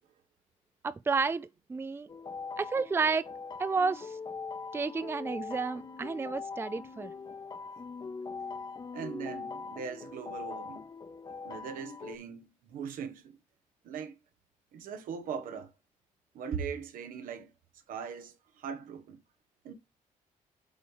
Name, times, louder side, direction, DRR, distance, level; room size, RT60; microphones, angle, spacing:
voice 1, 0.8-2.1 2.6-3.3 3.6-4.2 4.7-7.1, right 4 dB, 15° right, 0.4 m, -31 dB
sound 1, 2.1-12.2, left 4 dB, 30° left, 0.8 m, -42 dB
voice 2, 8.9-10.8 11.4-13.4 13.8-14.1 14.7-15.7 16.3-17.5 17.9-19.2 19.6-19.7, right 6 dB, 85° right, 1.2 m, -40 dB
8.5 x 3.2 x 5.4 m
cardioid pair, 105°, 14 cm